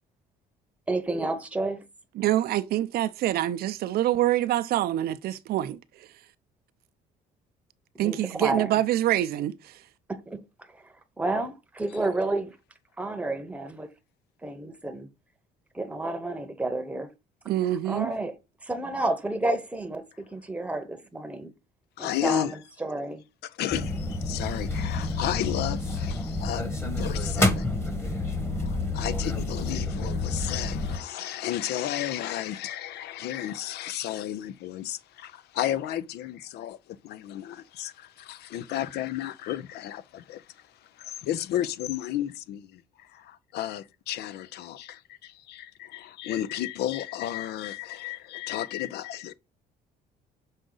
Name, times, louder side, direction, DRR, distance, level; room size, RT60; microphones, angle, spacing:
voice 1, 0.9-1.8 8.0-8.8 10.1-10.4 10.8-12.6 13.0-13.9 14.4-15.1 15.7-17.1 17.9-18.3 18.6-21.5 22.0-23.2, right 2 dB, 10° right, 0.9 m, -30 dB
voice 2, 2.2-6.1 8.0-9.8 17.5-18.1, right 13 dB, 65° right, 0.5 m, -26 dB
voice 3, 22.0-22.5 23.4-27.7 28.5-49.3, left 12 dB, 75° left, 0.6 m, -33 dB
sound 1, 23.7-31.0, left 2 dB, 15° left, 1.2 m, -29 dB
6.4 x 3.9 x 3.9 m
cardioid pair, 110°, 17 cm